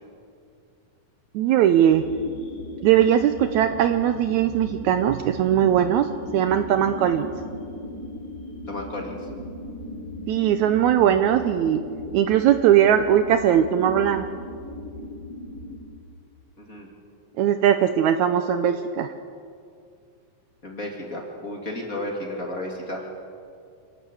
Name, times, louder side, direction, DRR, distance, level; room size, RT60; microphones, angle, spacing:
voice 1, 1.3-2.1 2.8-6.1 6.3-7.3 10.3-11.8 12.1-14.3 17.4-19.1, right 10 dB, 75° right, 9 dB, 1.8 m, -20 dB
sound 1, 1.9-15.8, left 1 dB, 75° left, 4.3 m, -38 dB
voice 2, 8.7-9.3 16.6-16.9 20.6-23.0, left 1 dB, 30° left, 0 dB, 2.5 m, -33 dB
28.0 x 12.0 x 8.5 m, 2.4 s
omnidirectional pair, 3.8 m